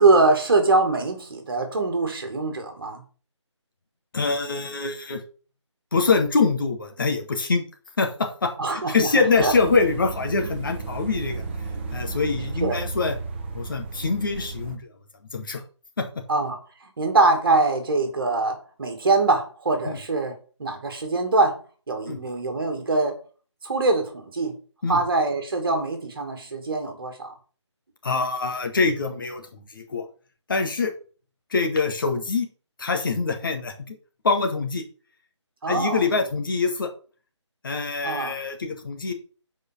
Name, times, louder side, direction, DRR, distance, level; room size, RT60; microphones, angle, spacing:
voice 1, 0.0-3.0 8.6-9.1 9.4-9.5 10.4-10.5 12.6-12.8 16.3-21.6 21.9-23.2 23.6-24.6 24.9-27.3 35.6-36.1 38.0-38.3, right 3 dB, 50° right, 5 dB, 2.5 m, -23 dB
voice 2, 4.1-5.2 5.9-7.6 8.0-11.4 11.9-13.2 13.5-14.9 15.3-15.6 16.0-16.1 19.8-20.0 22.1-22.2 24.8-25.0 28.0-30.1 30.5-30.9 31.5-32.5 32.8-34.0 34.2-34.8 35.7-36.9 37.6-39.1, left 4 dB, 45° left, 4 dB, 1.8 m, -24 dB
sound 1, 9.3-14.8, right 4 dB, 25° right, 1.0 m, -33 dB
8.2 x 4.9 x 6.2 m, 0.38 s
figure-of-eight pair, 155°, 16 cm